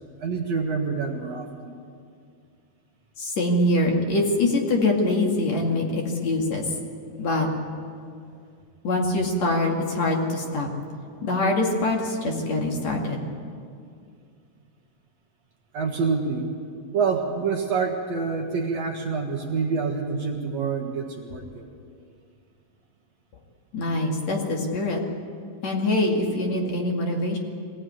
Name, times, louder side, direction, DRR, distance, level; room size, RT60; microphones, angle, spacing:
voice 1, 0.2-1.7 15.7-16.5 16.9-21.7, right 5 dB, 55° right, 1 dB, 2.6 m, -27 dB
voice 2, 3.2-6.6 7.2-7.5 8.8-10.7 11.2-13.2 23.7-25.0 25.6-27.4, left 2 dB, 50° left, 0 dB, 3.3 m, -24 dB
23.0 x 17.5 x 9.5 m, 2.3 s
omnidirectional pair, 4.1 m